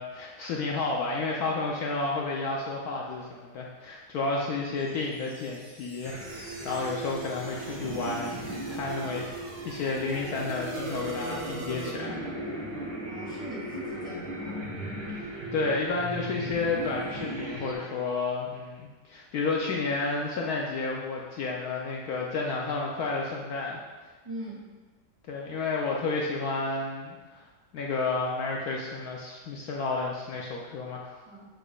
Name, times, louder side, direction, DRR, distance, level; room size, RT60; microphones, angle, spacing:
voice 1, 0.0-8.4 8.7-9.3 9.6-12.2 15.5-23.8 25.3-27.5 27.7-31.2, left 3 dB, 70° left, -2 dB, 1.1 m, -31 dB
sound 1, 4.8-9.5, equal, 45° right, 1.9 m, -52 dB
sound 2, 6.0-17.7, right 1 dB, 70° right, 1.8 m, -36 dB
voice 2, 13.0-14.6 24.2-24.6 31.3-31.5, right 1 dB, 20° right, -8 dB, 2.0 m, -40 dB
6.8 x 6.1 x 2.3 m, 1.3 s
omnidirectional pair, 1.8 m